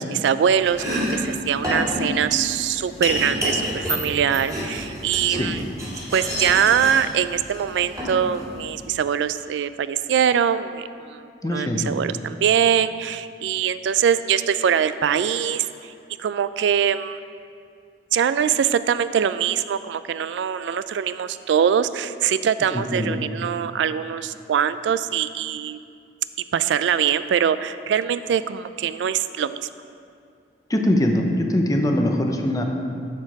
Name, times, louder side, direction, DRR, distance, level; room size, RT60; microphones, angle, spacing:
voice 1, 0.0-5.7 6.1-15.7 16.2-17.2 18.1-25.8 26.5-29.7, right 8 dB, 85° right, 13 dB, 0.3 m, -23 dB
Domestic sounds home sounds, 0.6-8.8, equal, 20° right, 2.3 m, -29 dB
voice 2, 11.4-11.9 22.7-23.2 30.7-32.6, left 1 dB, 20° left, 3 dB, 0.7 m, -22 dB
12.5 x 4.5 x 4.7 m, 2.4 s
head